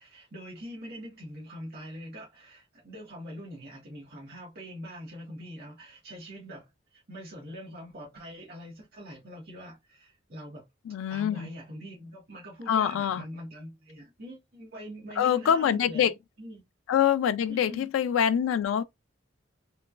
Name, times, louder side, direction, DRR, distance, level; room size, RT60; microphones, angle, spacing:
voice 1, 0.0-10.6 11.1-16.6 17.5-17.9, equal, 55° right, 1.1 m, -43 dB
voice 2, 10.9-11.5 12.7-13.2 15.2-16.1 16.9-18.8, left 9 dB, 90° left, 0.3 m, -25 dB
3.0 x 2.2 x 2.3 m
head